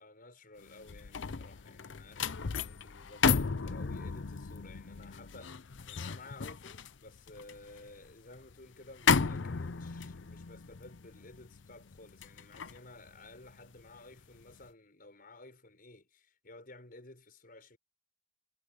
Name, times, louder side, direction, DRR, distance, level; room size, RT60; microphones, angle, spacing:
voice 1, 0.0-17.8, left 2 dB, 50° left, 6.1 m, -54 dB
sound 1, 0.7-14.0 14.4-14.6, left 5 dB, 80° left, 0.7 m, -34 dB
head